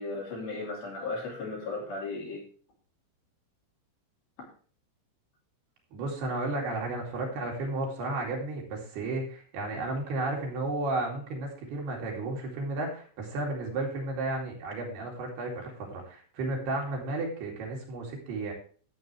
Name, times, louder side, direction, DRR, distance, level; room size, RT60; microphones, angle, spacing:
voice 1, 0.0-2.4, left 3 dB, 50° left, -2 dB, 4.6 m, -35 dB
voice 2, 5.9-18.5, right 2 dB, 60° right, -1 dB, 4.2 m, -33 dB
14.0 x 8.0 x 3.3 m, 0.43 s
omnidirectional pair, 5.8 m